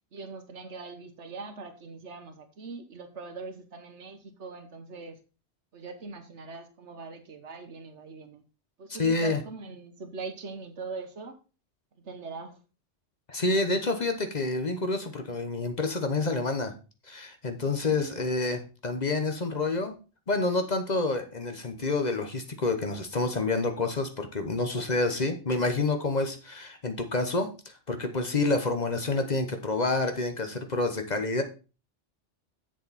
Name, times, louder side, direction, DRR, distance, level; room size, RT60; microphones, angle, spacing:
voice 1, 0.1-5.2 5.7-8.4 8.8-11.4 12.0-12.6 17.8-18.3, right 4 dB, 75° right, 7 dB, 1.5 m, -41 dB
voice 2, 9.0-9.4 13.3-16.7 17.1-19.9 20.3-31.4, left 3 dB, 40° left, 6 dB, 1.0 m, -28 dB
7.6 x 7.1 x 4.1 m, 0.33 s
omnidirectional pair, 1.2 m